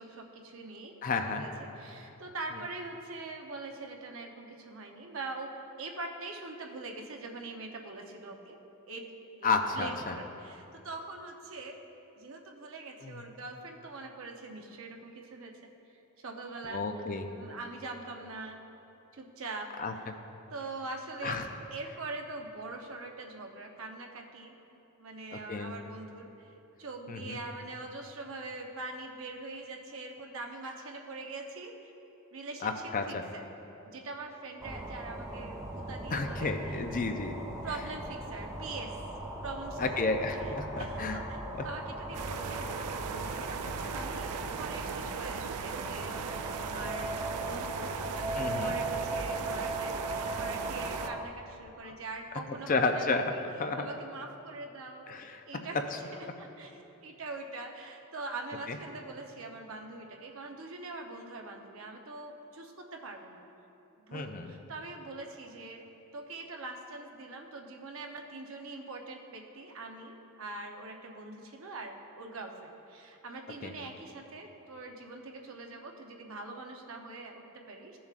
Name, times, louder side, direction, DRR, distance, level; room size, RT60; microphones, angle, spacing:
voice 1, 0.0-0.9 1.2-8.6 8.9-9.1 9.4-11.8 12.2-15.7 16.2-16.8 17.3-18.6 19.1-19.7 19.9-20.0 20.5-21.4 21.7-24.6 25.0-26.5 26.8-31.9 32.3-33.5 33.9-36.5 37.6-39.0 39.4-40.0 40.4-41.4 41.6-43.5 43.9-49.9 50.3-53.4 53.8-55.8 56.4-63.5 64.0-65.8 66.1-78.0, right 3 dB, 60° right, 2 dB, 0.8 m, -43 dB
voice 2, 1.0-1.4 9.4-10.2 13.0-13.2 16.7-17.3 19.8-20.1 21.2-21.5 25.3-25.7 27.1-27.4 32.6-33.2 36.1-37.4 39.8-41.7 43.8-43.9 48.3-48.7 51.8-52.0 52.5-53.9 55.1-55.4 55.9-56.0 58.7-58.8 64.1-64.5 73.6-73.7, left 3 dB, 35° left, 6 dB, 0.5 m, -32 dB
sound 1, 34.6-51.2, right 2 dB, 15° right, 0.7 m, -38 dB
sound 2, 42.1-51.1, right 6 dB, 85° right, 0.4 m, -38 dB
15.0 x 7.1 x 2.5 m, 3.0 s
head